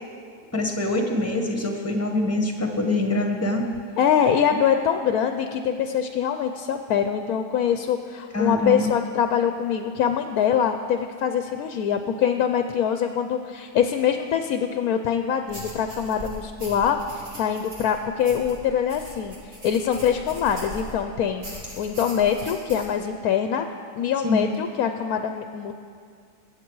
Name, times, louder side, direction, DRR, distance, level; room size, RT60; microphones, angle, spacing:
voice 1, 0.5-3.7 8.3-8.9 24.2-24.5, left 2 dB, 10° left, 3 dB, 1.1 m, -24 dB
voice 2, 4.0-17.0 17.4-21.5 21.8-23.7 23.9-25.7, left 8 dB, 70° left, 7 dB, 1.0 m, -24 dB
sound 1, 15.5-21.0 21.4-22.9, equal, 40° right, 2.6 m, -40 dB
21.5 x 8.5 x 4.7 m, 2.3 s
omnidirectional pair, 1.7 m